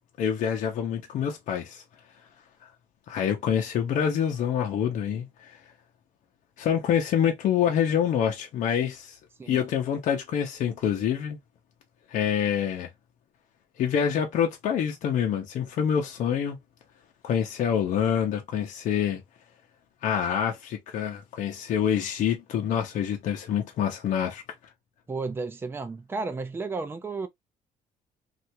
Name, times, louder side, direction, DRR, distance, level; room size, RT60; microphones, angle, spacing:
voice 1, 0.2-1.8 3.1-5.6 6.6-9.2 9.5-11.4 12.1-12.9 13.8-16.6 17.2-19.2 20.0-24.4, left 8 dB, 55° left, 0.8 m, -26 dB
voice 2, 25.1-27.3, right 3 dB, 15° right, 0.5 m, -33 dB
3.3 x 2.5 x 2.9 m
cardioid pair, 165°, 15 cm